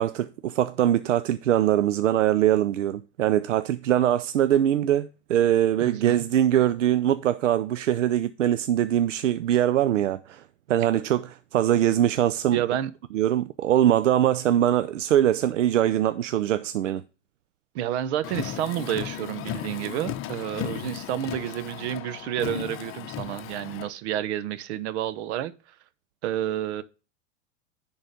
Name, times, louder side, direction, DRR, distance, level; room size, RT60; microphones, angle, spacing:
voice 1, 0.0-10.4 10.7-12.6 13.1-17.0, right 11 dB, 85° right, 0.5 m, -22 dB
voice 2, 5.8-6.3 10.8-10.9 12.5-12.9 17.7-25.5 26.2-26.8, right 11 dB, 65° right, 0.9 m, -30 dB
Car, 18.2-23.9, left 12 dB, 35° left, 0.8 m, -35 dB
10.5 x 3.9 x 5.1 m
hypercardioid pair, 95°, 36 cm